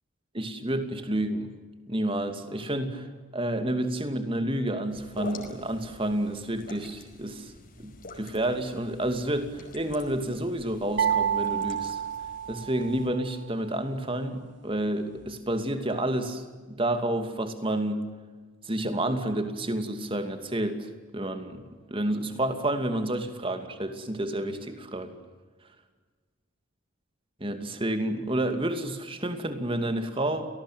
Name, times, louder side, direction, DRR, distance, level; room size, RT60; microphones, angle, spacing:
voice 1, 0.3-1.5 1.9-3.1 3.3-7.5 7.8-12.0 12.5-18.0 18.6-25.2 27.4-30.5, right 1 dB, 25° right, 8 dB, 2.6 m, -30 dB
sound 1, 4.9-13.1, left 2 dB, 45° left, 5.3 m, -46 dB
sound 2, 11.0-13.1, right 8 dB, 60° right, 0.8 m, -28 dB
29.5 x 19.0 x 9.2 m, 1.4 s
head